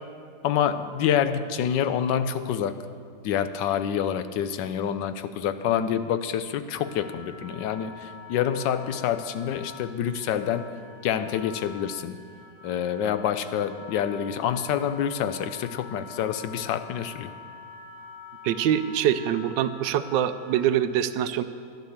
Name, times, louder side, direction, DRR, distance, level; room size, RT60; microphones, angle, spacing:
voice 1, 0.4-2.7 3.2-10.7 11.0-12.2 12.6-17.3, left 9 dB, 85° left, 11 dB, 1.3 m, -27 dB
Wind instrument woodwind instrument, 6.7-20.8, left 5 dB, 55° left, 2.4 m, -45 dB
voice 2, 18.4-21.4, right 10 dB, 85° right, 12 dB, 1.3 m, -24 dB
12.0 x 10.5 x 7.2 m, 2.2 s
omnidirectional pair, 1.9 m